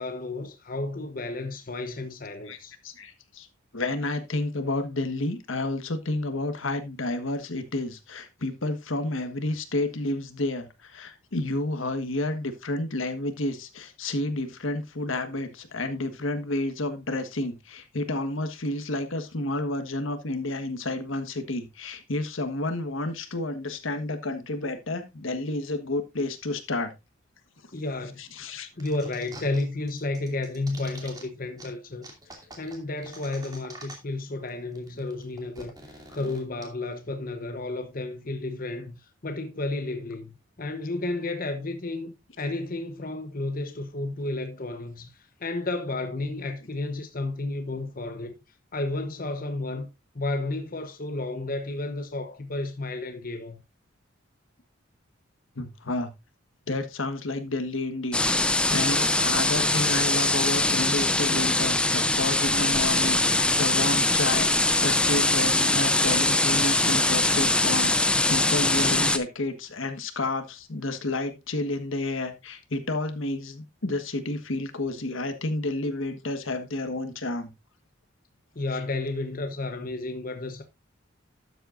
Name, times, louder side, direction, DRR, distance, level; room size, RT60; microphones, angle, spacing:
voice 1, 0.0-2.7 27.7-28.2 28.8-48.3 48.7-49.9 50.1-53.6 78.5-80.6, left 2 dB, 45° left, 1.0 m, -32 dB
voice 2, 2.8-3.5 3.7-26.9 28.2-28.7 55.5-56.1 56.7-64.5 64.8-77.5, left 2 dB, 75° left, 1.5 m, -30 dB
sound 1, 28.8-29.6 29.9-31.2 31.6-31.7 32.0-34.2 34.5-34.6 34.8-36.6, right 2 dB, 20° right, 2.6 m, -45 dB
sound 2, 58.1-69.2, left 2 dB, 5° left, 0.6 m, -22 dB
12.5 x 7.9 x 2.5 m
head